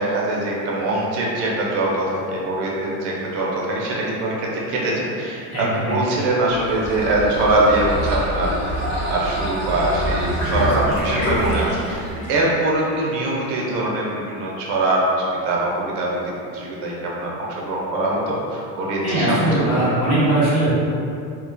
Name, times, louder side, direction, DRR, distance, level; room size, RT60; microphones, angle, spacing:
voice 1, 0.0-12.0 12.3-20.2, right 2 dB, 60° right, -4 dB, 0.5 m, -23 dB
voice 2, 5.5-6.2 19.0-20.7, right 1 dB, 35° left, -10 dB, 1.0 m, -20 dB
sound 1, 6.4-12.5, equal, 65° left, 1.0 m, -26 dB
2.8 x 2.2 x 2.4 m, 2.6 s
cardioid pair, 180°, 40 cm